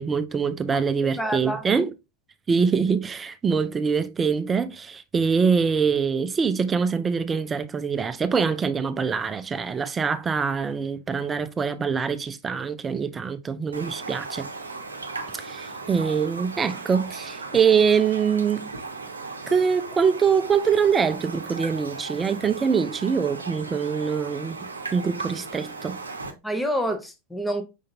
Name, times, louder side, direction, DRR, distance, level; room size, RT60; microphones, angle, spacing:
voice 1, 0.0-1.9 2.5-14.5 15.3-18.7 19.5-26.0, right 6 dB, 20° right, 0.3 m, -24 dB
voice 2, 1.2-1.7 26.4-27.6, equal, 5° left, 0.7 m, -27 dB
Raindrop, 13.7-26.3, right 3 dB, 75° right, 0.6 m, -37 dB
5.3 x 3.7 x 2.7 m
figure-of-eight pair, 90°, 0 cm